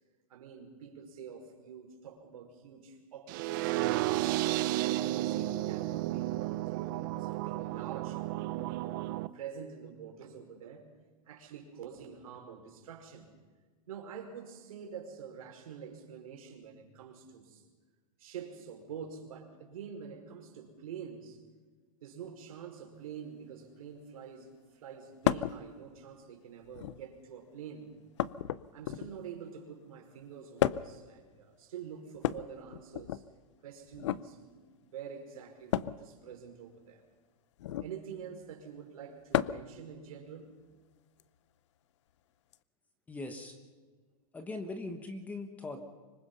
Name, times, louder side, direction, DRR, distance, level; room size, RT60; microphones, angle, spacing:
voice 1, 0.3-4.0 4.7-10.9 11.2-13.3 13.9-17.6 18.2-21.4 22.0-27.9 28.7-33.2 33.6-37.0 37.8-40.5, right 7 dB, 75° right, 2 dB, 5.3 m, -46 dB
sound 1, 3.3-9.3, right 16 dB, 35° right, 0.6 m, -32 dB
Glass on wood, 25.2-25.6 26.6-27.1 28.2-29.3 30.6-31.0 32.1-33.2 33.9-34.2 35.7-36.0 37.6-38.0 39.3-39.7 41.2-41.3 42.5-42.6, left 12 dB, 55° left, 0.7 m, -32 dB
voice 2, 43.1-43.6 44.3-45.8, left 2 dB, 10° left, 7 dB, 1.2 m, -40 dB
25.0 x 21.5 x 5.7 m, 1.4 s
supercardioid pair, 170°, 18 cm